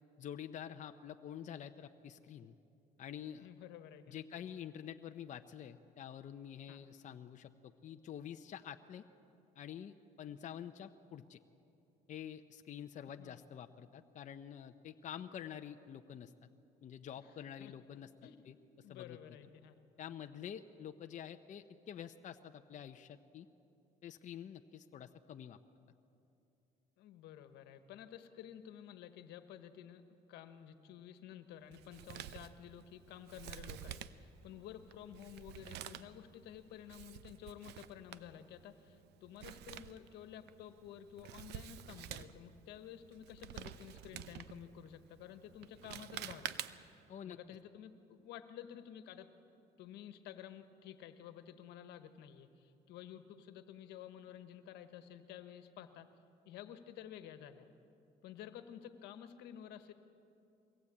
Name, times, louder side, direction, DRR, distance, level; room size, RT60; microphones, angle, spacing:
voice 1, 0.2-2.5 3.0-3.5 4.1-9.0 9.6-11.4 12.1-16.3 16.8-18.1 18.4-18.5 18.9-19.2 20.0-23.5 24.0-25.6 47.1-47.4, left 9 dB, 45° left, 7 dB, 0.7 m, -48 dB
voice 2, 3.4-4.2 6.7-6.8 13.2-13.4 17.6-17.7 18.2-18.4 18.8-19.7 27.0-30.0 30.3-46.6 47.2-49.3 49.8-56.1 56.4-57.7 58.2-59.9, left 10 dB, 85° left, 9 dB, 1.4 m, -52 dB
Male speech man speaking, 31.7-47.0, right 11 dB, 80° right, 0.8 m, -50 dB
23.0 x 17.5 x 8.5 m, 2.7 s
cardioid pair, 110°, 17 cm